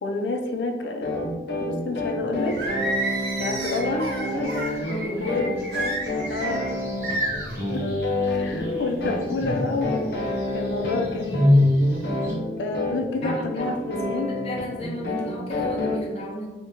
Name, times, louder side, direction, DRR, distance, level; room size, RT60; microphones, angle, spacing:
voice 1, 0.0-1.1 1.6-2.7 3.4-4.1 4.6-4.9 5.2-5.5 6.3-6.8 7.7-7.9 8.3-11.5 12.6-14.3, left 3 dB, 90° left, 4 dB, 0.4 m, -29 dB
sound 1, 1.0-16.0, left 1 dB, 70° left, 0.7 m, -29 dB
sound 2, 2.4-12.3, left 1 dB, 15° right, 0.7 m, -28 dB
Singing, 2.6-4.7 5.7-6.6 7.0-7.5, right 2 dB, 65° right, 0.6 m, -29 dB
voice 2, 4.8-5.9 8.4-8.8 13.2-13.8 14.1-16.5, left 1 dB, 35° left, -1 dB, 0.5 m, -34 dB
2.8 x 2.1 x 3.5 m, 1.2 s
head